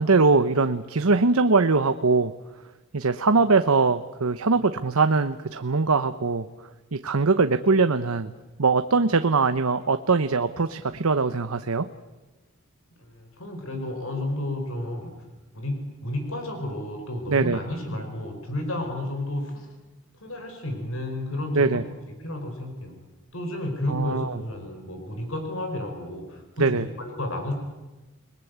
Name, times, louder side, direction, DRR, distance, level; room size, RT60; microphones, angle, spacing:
voice 1, 0.0-2.3 2.9-6.5 6.9-8.3 8.6-11.9 17.3-17.6 21.5-21.8 23.9-24.4 26.6-26.9, right 4 dB, 85° right, 10 dB, 0.9 m, -22 dB
voice 2, 13.0-15.1 15.5-19.7 20.2-21.9 22.2-22.9 23.3-27.5, left 1 dB, 70° left, 4 dB, 4.7 m, -32 dB
29.5 x 21.0 x 8.2 m, 1.1 s
head